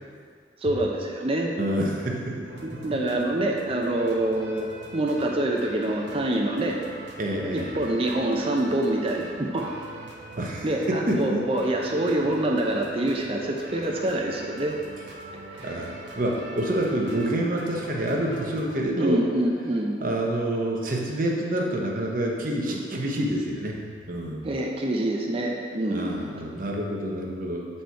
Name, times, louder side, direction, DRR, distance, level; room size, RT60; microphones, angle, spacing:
voice 1, 0.6-1.5 2.6-6.8 7.5-9.7 10.6-14.8 15.5-15.8 19.0-20.0 24.4-26.4, right 1 dB, 30° right, 0 dB, 0.5 m, -26 dB
voice 2, 1.6-2.4 2.7-2.8 7.2-7.7 10.4-11.4 15.6-19.2 20.0-24.4 25.9-27.7, right 1 dB, 50° right, -1 dB, 1.0 m, -27 dB
sound 1, 2.4-18.8, right 2 dB, 80° right, 0.9 m, -42 dB
7.9 x 4.3 x 4.6 m, 2.1 s
head